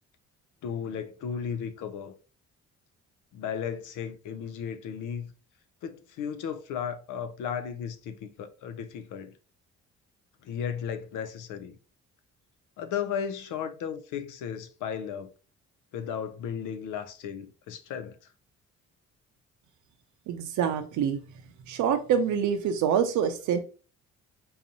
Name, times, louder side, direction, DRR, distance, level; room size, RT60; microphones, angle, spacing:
voice 1, 0.6-2.1 3.3-5.3 5.8-9.3 10.4-11.8 12.8-15.3 15.9-18.2, left 7 dB, 85° left, 0.6 m, -35 dB
voice 2, 20.3-21.2 21.6-23.6, right 8 dB, 75° right, 0.5 m, -26 dB
3.9 x 2.7 x 2.8 m
cardioid pair, 90°, 30 cm